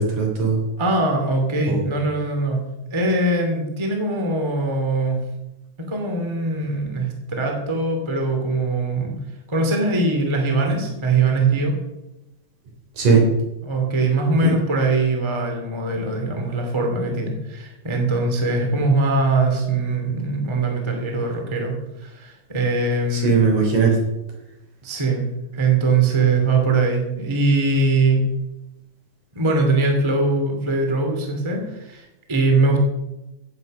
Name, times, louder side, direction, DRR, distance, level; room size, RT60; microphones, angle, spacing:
voice 1, 0.0-0.6 1.7-1.9 10.7-10.8 12.9-13.3 14.4-14.5 23.1-24.0, right 4 dB, 60° right, 1 dB, 4.8 m, -18 dB
voice 2, 0.8-2.6 2.9-5.2 5.9-9.1 9.5-11.7 13.7-23.4 24.8-25.2 25.5-28.2 29.3-32.8, right 3 dB, 10° right, 2 dB, 2.0 m, -21 dB
16.5 x 8.1 x 6.5 m, 0.95 s
omnidirectional pair, 4.0 m